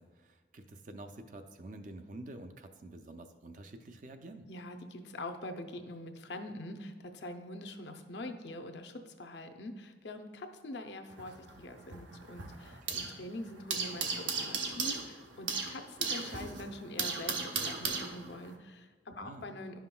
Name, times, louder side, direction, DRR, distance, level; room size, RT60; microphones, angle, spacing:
voice 1, 0.0-4.5 12.9-13.1 19.2-19.5, right 2 dB, 45° right, 7 dB, 0.4 m, -48 dB
voice 2, 4.5-19.8, left 1 dB, 65° left, 5 dB, 0.6 m, -44 dB
sound 1, 11.1-13.2 13.5-18.5, right 5 dB, 80° right, 0.8 m, -36 dB
11.0 x 5.7 x 2.2 m, 1.4 s
head